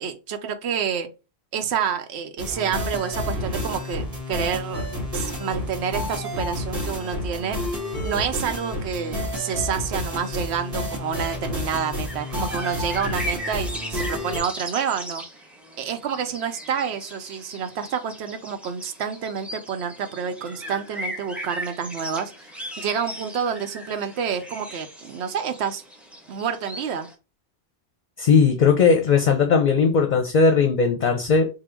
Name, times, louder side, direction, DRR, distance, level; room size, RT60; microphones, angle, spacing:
voice 1, 0.0-1.1 1.5-4.9 5.1-7.6 8.0-15.2 15.8-22.5 22.8-25.8 26.3-27.1, right 7 dB, 80° right, 0.9 m, -28 dB
sound 1, 2.4-14.4, left 1 dB, 55° right, 1.7 m, -30 dB
sound 2, 12.0-27.1, equal, ahead, 0.5 m, -38 dB
voice 2, 28.2-31.5, left 5 dB, 55° left, 0.6 m, -18 dB
3.7 x 2.2 x 4.3 m
omnidirectional pair, 1.1 m